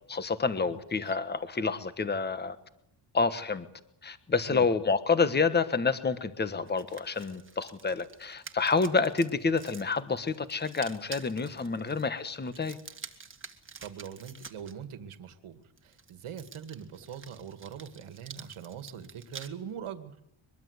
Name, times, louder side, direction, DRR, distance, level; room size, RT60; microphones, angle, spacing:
voice 1, 0.1-2.6 3.1-3.7 4.0-12.8, left 4 dB, 20° left, 12 dB, 1.3 m, -28 dB
voice 2, 0.7-1.2 4.5-4.7 11.7-12.0 13.8-20.2, right 8 dB, 85° right, 10 dB, 2.3 m, -43 dB
sound 1, 6.7-14.7 15.8-19.5, right 5 dB, 25° right, 1.8 m, -48 dB
23.0 x 22.5 x 8.2 m, 0.76 s
wide cardioid pair, 175°, 49 cm